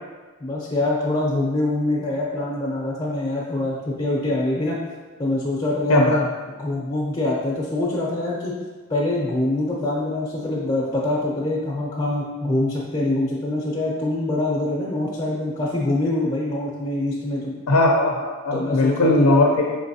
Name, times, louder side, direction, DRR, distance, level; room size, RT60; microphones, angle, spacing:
voice 1, 0.4-4.8 5.2-6.3 6.6-8.6 8.9-17.5 18.5-19.4, left 2 dB, 20° left, -6 dB, 0.6 m, -24 dB
voice 2, 17.7-19.8, left 2 dB, 70° left, 0 dB, 0.4 m, -18 dB
5.1 x 3.2 x 2.7 m, 1.3 s
head